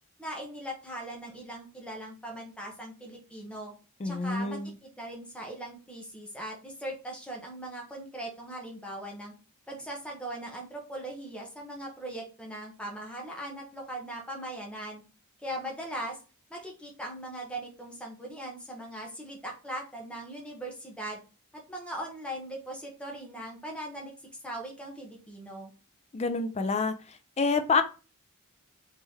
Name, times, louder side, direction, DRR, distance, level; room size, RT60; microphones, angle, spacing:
voice 1, 0.2-3.7 4.0-9.3 9.7-15.0 15.4-16.2 16.5-21.2 21.7-24.1 24.4-25.7, right 1 dB, 5° left, -1 dB, 0.9 m, -39 dB
voice 2, 4.0-4.7 26.1-26.9 27.4-27.8, left 4 dB, 30° left, 9 dB, 0.4 m, -27 dB
3.6 x 3.3 x 2.8 m, 0.33 s
head